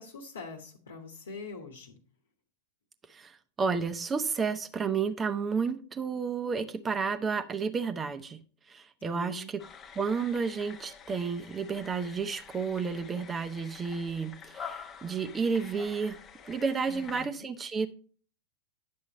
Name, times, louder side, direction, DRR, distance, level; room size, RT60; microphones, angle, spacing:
voice 1, 0.0-2.0 9.0-9.6 16.9-17.5, left 4 dB, 65° left, 1.2 m, -44 dB
voice 2, 3.6-8.4 8.7-9.6 10.0-16.2 16.5-17.9, right 5 dB, 20° right, 0.8 m, -31 dB
sound 1, 9.6-17.3, left 6 dB, 25° left, 1.1 m, -47 dB
10.5 x 7.4 x 3.0 m
figure-of-eight pair, 90°, 0 cm